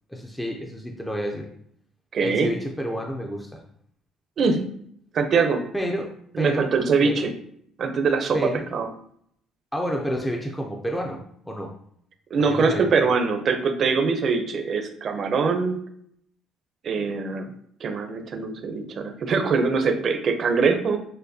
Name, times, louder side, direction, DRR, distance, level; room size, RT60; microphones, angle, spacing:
voice 1, 0.1-1.5 2.2-3.6 5.7-6.7 7.0-7.3 8.3-8.7 9.7-11.7 12.5-13.0, equal, 5° left, 1 dB, 0.4 m, -30 dB
voice 2, 2.1-2.5 4.4-4.7 5.1-5.6 6.3-7.3 7.8-8.9 12.3-15.8 16.8-17.5 17.8-21.0, right 4 dB, 45° right, 6 dB, 0.5 m, -23 dB
6.4 x 2.2 x 2.6 m, 0.67 s
cardioid pair, 135°, 0 cm